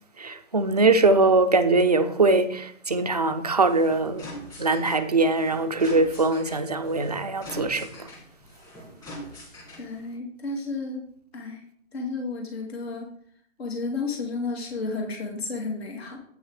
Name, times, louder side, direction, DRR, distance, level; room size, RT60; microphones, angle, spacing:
voice 1, 0.2-4.3 4.6-7.9, right 3 dB, 30° right, 0.4 m, -22 dB
sound 1, 3.6-10.0, equal, 10° left, 2.5 m, -43 dB
voice 2, 9.8-11.0 11.3-11.6 11.9-13.1 13.6-16.2, left 3 dB, 50° left, 2.2 m, -32 dB
8.7 x 6.3 x 4.8 m
hypercardioid pair, 160°, 39 cm